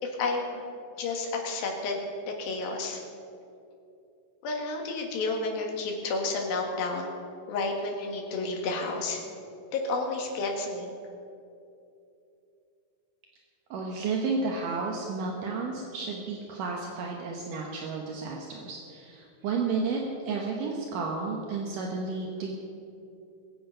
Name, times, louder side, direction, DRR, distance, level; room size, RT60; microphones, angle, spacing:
voice 1, 0.0-0.6 1.0-2.0 2.3-3.0 4.4-7.1 7.5-9.2 9.7-10.9, left 3 dB, 90° left, 1 dB, 3.6 m, -31 dB
voice 2, 13.7-22.5, right 4 dB, 70° right, 0 dB, 2.6 m, -32 dB
21.5 x 8.6 x 5.6 m, 2.6 s
omnidirectional pair, 4.1 m